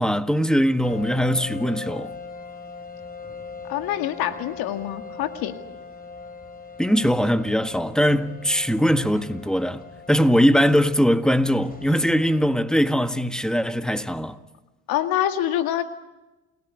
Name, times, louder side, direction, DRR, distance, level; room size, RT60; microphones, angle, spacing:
voice 1, 0.0-2.1 6.8-14.4, equal, ahead, 1.6 m, -21 dB
sound 1, 0.8-12.5, left 4 dB, 25° left, 4.7 m, -40 dB
voice 2, 3.7-5.5 14.9-15.8, left 11 dB, 80° left, 2.2 m, -25 dB
29.0 x 18.0 x 9.9 m
supercardioid pair, 75°, 36 cm